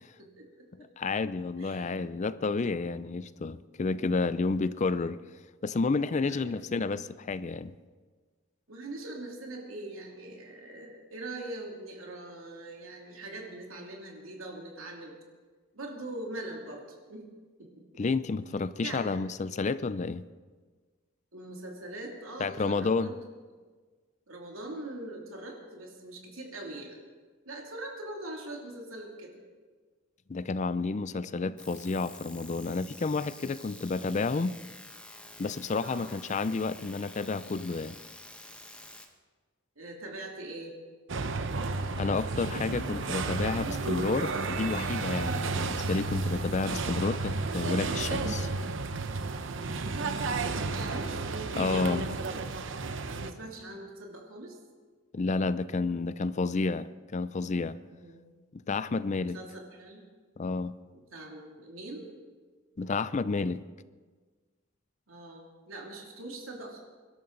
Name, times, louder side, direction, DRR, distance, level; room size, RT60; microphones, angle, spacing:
voice 1, 0.2-0.7 1.6-2.0 6.3-6.6 8.7-15.2 15.7-17.2 17.6-18.0 18.8-19.1 21.3-23.1 24.3-27.0 27.4-29.3 35.8-36.1 39.8-40.7 50.3-51.2 51.8-52.4 53.1-54.6 57.9-58.2 59.3-60.0 60.9-62.1 65.1-66.8, right 2 dB, 90° right, 2.7 m, -42 dB
voice 2, 0.8-5.2 5.6-7.8 18.0-20.2 22.4-23.1 30.3-34.6 35.4-38.0 42.0-48.5 51.6-52.1 55.1-57.8 58.5-59.4 60.4-60.7 62.8-63.7, left 3 dB, 35° left, 0.4 m, -30 dB
sound 1, 31.6-39.1, left 1 dB, 5° left, 1.1 m, -49 dB
sound 2, 41.1-53.3, right 3 dB, 65° right, 0.8 m, -32 dB
24.0 x 12.5 x 3.9 m
head